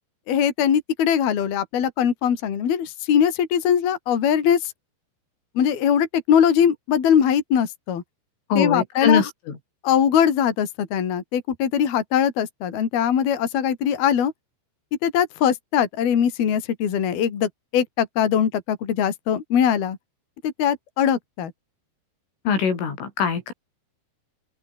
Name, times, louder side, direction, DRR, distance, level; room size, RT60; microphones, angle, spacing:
voice 1, 0.3-4.7 5.6-8.0 8.6-9.3 9.8-14.3 15.0-20.0 20.4-21.5, left 8 dB, 55° left, 4.8 m, -21 dB
voice 2, 8.5-9.6 22.5-23.5, left 6 dB, 90° left, 8.0 m, -22 dB
open air
omnidirectional pair, 5.5 m